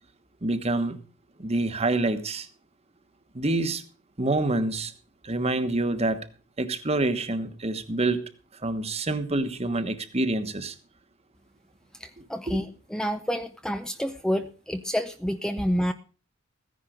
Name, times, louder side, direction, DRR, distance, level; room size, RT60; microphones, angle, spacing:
voice 1, 0.4-1.0 1.4-2.5 3.3-3.8 4.2-4.9 5.2-6.2 6.6-8.2 8.6-10.7 12.2-12.6, right 2 dB, 30° right, 1.2 m, -27 dB
voice 2, 12.0-12.7 12.9-15.9, equal, 5° left, 0.6 m, -28 dB
15.0 x 10.5 x 5.0 m
head